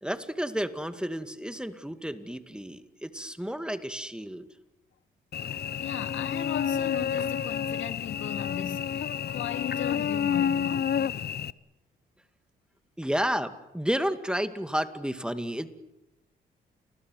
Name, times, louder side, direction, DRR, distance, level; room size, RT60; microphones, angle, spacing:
voice 1, 0.0-4.5 13.0-15.7, equal, 5° right, 2.3 m, -31 dB
Cricket / Buzz, 5.3-11.5, left 8 dB, 55° left, 0.9 m, -29 dB
voice 2, 5.8-10.9, left 9 dB, 75° left, 2.1 m, -37 dB
29.5 x 20.0 x 9.5 m
supercardioid pair, 60°, 20 cm